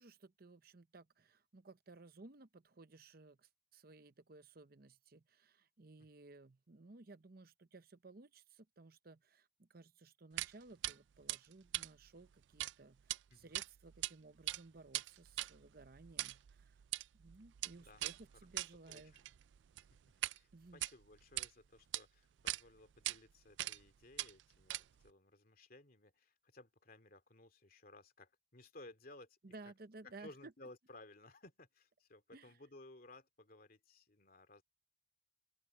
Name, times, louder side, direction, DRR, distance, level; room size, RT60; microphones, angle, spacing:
voice 1, 0.0-16.8 17.1-19.1 20.5-20.8 29.4-30.5 32.3-32.5, right 3 dB, 50° right, 0.8 m, -58 dB
sound 1, 10.4-10.5 10.8-10.9 11.3-12.7 13.0-13.2 13.5-14.1 14.4-20.4 20.7-21.5 21.9-22.0 22.5-22.6 23.0-23.2 23.6-23.9 24.2-25.1, right 16 dB, 70° right, 0.3 m, -42 dB
voice 2, 18.9-19.2 20.2-29.4 30.0-34.6, left 2 dB, 50° left, 2.6 m, -59 dB
open air
head